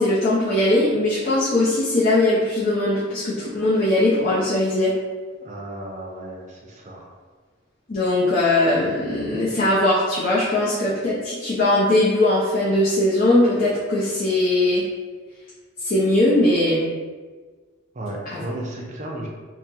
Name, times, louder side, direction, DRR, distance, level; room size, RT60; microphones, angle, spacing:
voice 1, 0.0-4.9 7.9-14.8 15.8-16.9 18.3-18.4, left 1 dB, 40° left, -9 dB, 0.8 m, -20 dB
voice 2, 5.4-7.1 17.9-19.3, right 1 dB, 35° right, -2 dB, 0.7 m, -34 dB
3.6 x 2.3 x 4.4 m, 1.4 s
head